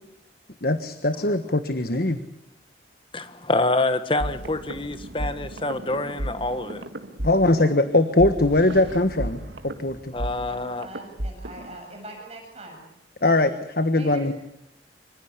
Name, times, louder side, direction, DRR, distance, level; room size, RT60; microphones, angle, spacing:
voice 1, 0.6-2.2 7.2-10.1 13.2-14.3, left 2 dB, 55° left, 10 dB, 1.4 m, -21 dB
voice 2, 3.1-6.8 10.1-10.9, left 2 dB, 30° left, 10 dB, 1.6 m, -26 dB
sound 1, 4.2-11.8, right 1 dB, 80° right, 2.1 m, -34 dB
voice 3, 10.5-12.8 14.0-14.3, right 1 dB, 35° right, 2 dB, 7.6 m, -41 dB
26.0 x 25.5 x 8.3 m, 0.77 s
head